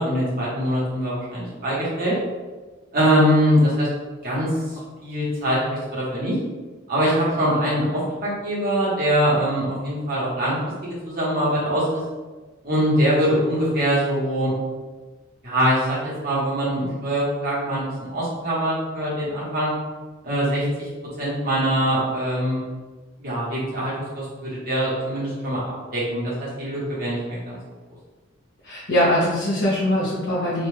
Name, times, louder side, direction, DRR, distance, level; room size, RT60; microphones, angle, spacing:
voice 1, 0.0-2.2 2.9-3.9 4.2-4.5 5.0-6.3 6.9-10.6 10.8-12.0 12.6-14.5 15.4-19.7 20.2-20.9 21.2-22.6 23.2-25.6 25.9-27.6, equal, 50° right, -8 dB, 1.1 m, -23 dB
voice 2, 28.6-30.7, left 1 dB, 65° left, -8 dB, 0.7 m, -22 dB
2.5 x 2.3 x 3.2 m, 1.3 s
head